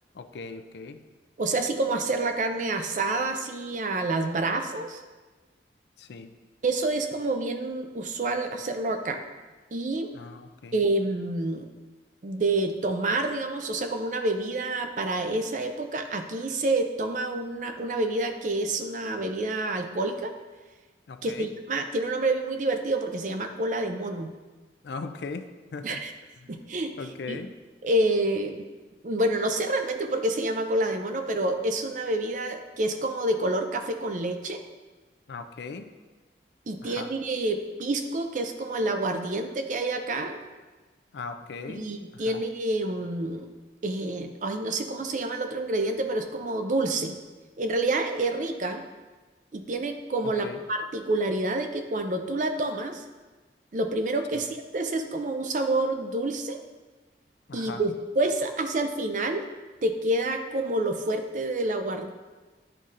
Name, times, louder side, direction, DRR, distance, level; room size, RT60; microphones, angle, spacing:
voice 1, 0.2-1.0 6.0-6.3 10.1-10.7 21.1-21.5 24.8-26.0 27.0-27.5 35.3-35.9 36.8-37.1 41.1-41.9 42.1-42.2 50.2-50.6 54.3-54.4 57.5-57.8, left 4 dB, 75° left, 8 dB, 0.4 m, -38 dB
voice 2, 1.4-5.0 6.6-9.2 9.7-10.1 10.7-11.7 12.2-20.3 21.2-24.3 25.8-26.1 26.5-27.4 27.8-28.7 29.0-34.6 36.7-40.4 41.7-43.5 43.8-47.2 47.6-48.8 49.5-53.0 53.7-56.6 57.5-59.4 59.8-62.1, right 2 dB, 45° right, 6 dB, 0.5 m, -28 dB
9.9 x 4.0 x 2.5 m, 1.3 s
head